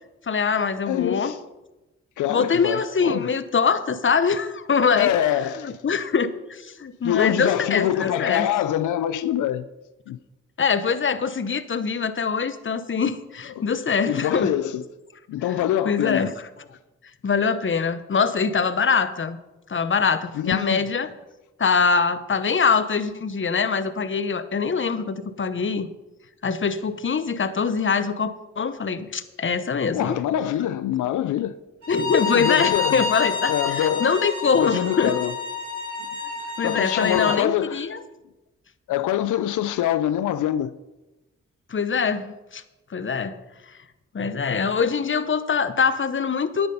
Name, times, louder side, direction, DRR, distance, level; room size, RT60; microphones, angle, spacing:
voice 1, 0.3-1.3 2.3-5.1 5.6-8.5 10.6-14.5 15.8-16.3 17.2-19.4 19.7-21.1 21.6-25.9 26.4-30.2 31.9-35.1 36.6-38.0 41.7-42.6 42.9-43.4 44.1-46.7, left 5 dB, 40° left, 0.9 m, -23 dB
voice 2, 0.8-1.4 2.2-3.3 4.9-5.8 7.0-9.7 10.1-10.2 13.6-13.7 14.0-14.8 15.3-16.3 20.3-20.8 29.9-31.6 32.3-33.1 33.5-34.1 34.6-35.4 36.4-38.0 38.9-40.8, left 11 dB, 90° left, 0.4 m, -25 dB
Bowed string instrument, 31.8-37.4, left 6 dB, 80° right, 4.9 m, -28 dB
10.0 x 8.9 x 5.5 m
cardioid pair, 60°, 29 cm